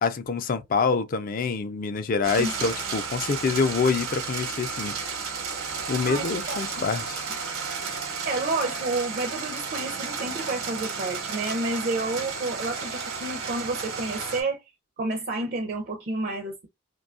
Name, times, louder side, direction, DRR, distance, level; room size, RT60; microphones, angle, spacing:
voice 1, 0.0-4.9 5.9-7.2, left 5 dB, 40° left, 0.3 m, -26 dB
sound 1, 2.2-14.4, right 5 dB, 85° right, 0.9 m, -33 dB
voice 2, 6.1-6.6 8.2-14.6 15.0-16.7, right 2 dB, 45° right, 0.5 m, -30 dB
2.6 x 2.2 x 2.5 m
head